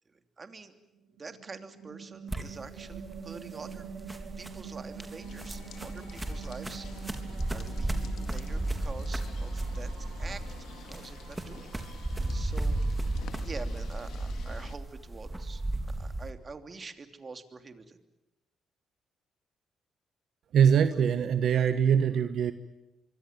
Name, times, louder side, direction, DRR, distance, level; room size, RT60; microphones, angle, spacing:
voice 1, 0.1-0.7 1.2-3.9 4.4-7.1 7.5-9.9 10.2-10.4 10.8-12.8 13.4-15.6 15.9-18.0, right 4 dB, 35° right, 8 dB, 2.9 m, -46 dB
sound 1, 0.9-14.3, right 7 dB, 85° right, 3.5 m, -47 dB
sound 2, 2.3-16.3, right 2 dB, 15° right, 3.6 m, -34 dB
sound 3, 5.2-14.8, left 8 dB, 70° left, 2.1 m, -50 dB
voice 2, 20.5-22.5, right 8 dB, 65° right, 10 dB, 1.3 m, -23 dB
25.0 x 24.0 x 9.3 m, 0.98 s
cardioid pair, 90°, 0 cm